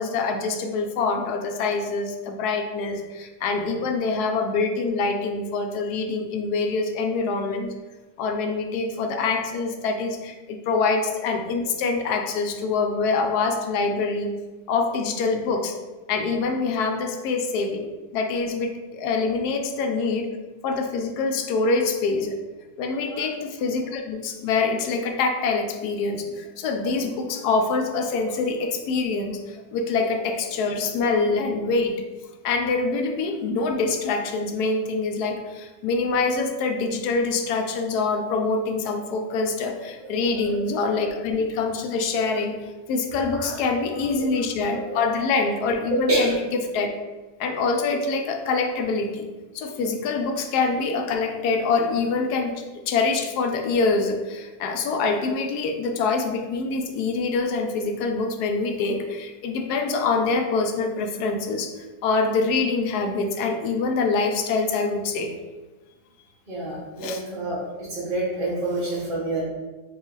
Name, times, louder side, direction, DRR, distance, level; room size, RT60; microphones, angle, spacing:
voice 1, 0.0-7.7 8.2-14.3 14.7-15.8 16.1-20.3 20.6-22.4 22.8-32.0 32.4-42.6 42.9-46.4 46.7-46.9 47.4-49.3 49.5-52.5 52.9-61.7 62.0-65.3 67.0-67.2, left 4 dB, 80° left, 4 dB, 1.1 m, -25 dB
voice 2, 45.9-46.3 66.5-67.6 67.9-69.4, right 2 dB, 35° right, -10 dB, 1.2 m, -27 dB
4.0 x 2.8 x 3.9 m, 1.2 s
omnidirectional pair, 1.7 m